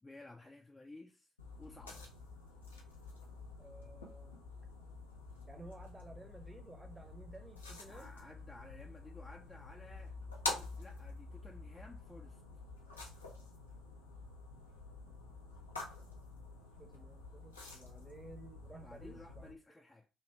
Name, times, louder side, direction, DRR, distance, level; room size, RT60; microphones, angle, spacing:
voice 1, 0.0-1.3 1.6-2.1 7.9-10.2 10.5-12.4 18.8-20.1, left 2 dB, 15° left, 0.4 m, -55 dB
sound 1, 1.4-19.5, left 3 dB, 85° left, 0.6 m, -48 dB
voice 2, 3.6-4.4 5.5-8.1 16.8-19.5, right 2 dB, 15° right, 0.8 m, -54 dB
3.1 x 2.8 x 2.8 m
figure-of-eight pair, 45°, 0 cm